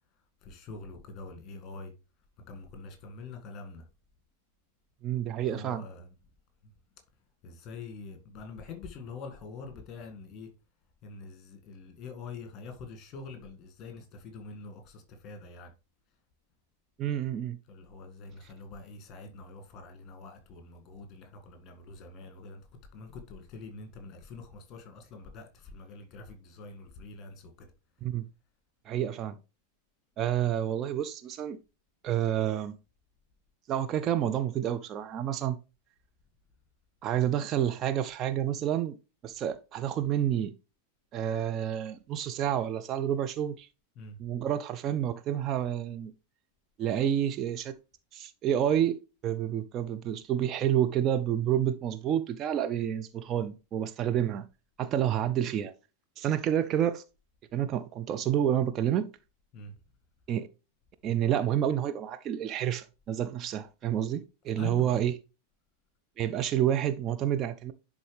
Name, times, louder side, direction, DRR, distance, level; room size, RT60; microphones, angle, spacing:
voice 1, 0.4-1.9 2.5-3.8 5.4-6.1 7.4-10.5 11.0-15.7 17.7-22.7 22.9-27.7 44.0-44.2 59.5-59.7 64.6-65.0, left 4 dB, 30° left, 1.8 m, -45 dB
voice 2, 5.0-5.8 17.0-17.6 28.0-28.3 28.9-29.4 30.2-31.6 32.0-32.8 33.7-35.6 37.0-39.0 39.2-40.5 41.1-43.7 44.2-46.1 46.8-47.7 48.1-54.5 54.8-55.7 56.2-57.0 57.5-59.1 60.3-60.5 61.0-65.1 66.2-67.7, right 10 dB, 30° right, 0.4 m, -29 dB
10.5 x 3.7 x 3.2 m
figure-of-eight pair, 90°, 0 cm